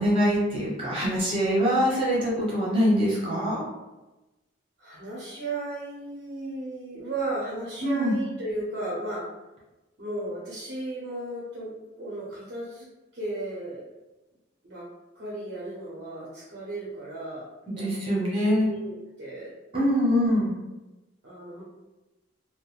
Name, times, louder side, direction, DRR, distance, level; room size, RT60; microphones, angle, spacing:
voice 1, 0.0-3.6 7.8-8.1 17.7-18.7 19.7-20.5, equal, 30° right, -6 dB, 0.9 m, -24 dB
voice 2, 4.8-9.3 10.0-12.9 13.1-13.9 14.6-14.9 15.1-19.5 21.2-21.6, right 2 dB, 55° right, -6 dB, 0.8 m, -35 dB
2.4 x 2.0 x 3.4 m, 1.1 s
head